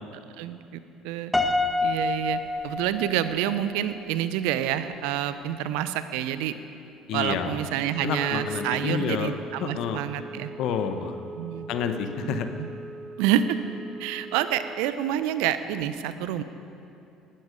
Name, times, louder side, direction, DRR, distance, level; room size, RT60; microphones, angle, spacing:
voice 1, 0.4-1.3 1.8-6.5 7.1-10.5 11.4-11.7 12.2-12.7 13.2-13.6 14.0-16.4, right 11 dB, 70° right, 12 dB, 0.7 m, -28 dB
Piano, 1.3-3.6, left 2 dB, 5° left, 1.4 m, -27 dB
voice 2, 7.1-7.5 8.0-9.3 9.6-10.0 10.6-11.1 11.7-12.5, left 7 dB, 60° left, 8 dB, 1.1 m, -29 dB
Wind instrument woodwind instrument, 7.9-15.0, right 2 dB, 25° right, 0.7 m, -40 dB
18.5 x 12.0 x 5.1 m, 2.7 s
figure-of-eight pair, 60°, 0 cm